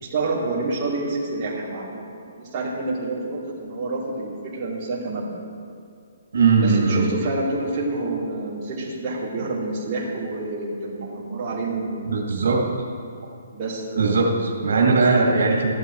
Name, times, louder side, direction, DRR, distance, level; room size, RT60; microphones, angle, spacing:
voice 1, 0.0-5.4 6.6-12.1 13.5-14.2, right 2 dB, 20° right, -7 dB, 2.8 m, -28 dB
voice 2, 6.3-7.0 12.0-12.7 14.0-15.7, right 4 dB, 80° right, 0 dB, 2.2 m, -19 dB
14.5 x 11.0 x 4.6 m, 2.3 s
hypercardioid pair, 170°, 0 cm